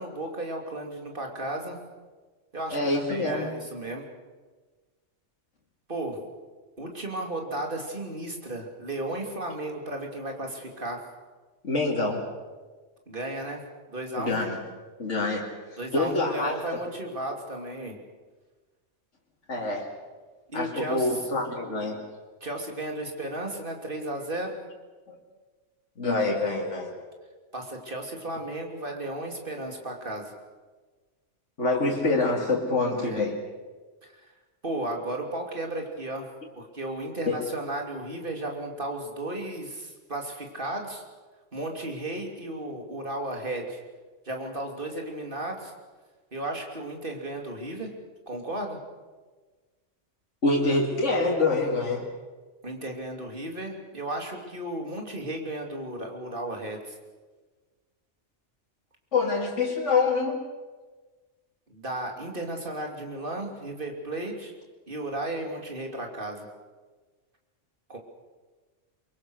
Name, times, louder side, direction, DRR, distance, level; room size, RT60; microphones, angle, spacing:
voice 1, 0.0-1.8 2.5-2.8 3.1-4.0 5.9-6.2 6.8-11.0 13.1-13.6 13.9-14.4 15.8-18.0 20.5-21.3 22.4-24.6 27.5-30.3 32.9-33.2 34.6-36.3 36.6-41.0 41.5-43.8 44.3-45.7 46.3-47.9 48.3-48.8 52.6-57.0 61.7-64.5 64.9-66.5 67.9-68.0, right 1 dB, 45° right, 2 dB, 3.3 m, -34 dB
voice 2, 2.7-3.5 11.6-12.2 14.2-14.6 15.0-15.4 15.9-16.5 19.5-19.9 20.5-22.0 25.1-25.2 26.0-26.9 31.6-33.4 37.3-37.4 50.4-52.0 59.1-60.4, left 3 dB, 75° left, -2 dB, 2.8 m, -26 dB
23.5 x 23.0 x 6.5 m, 1.3 s
omnidirectional pair, 1.2 m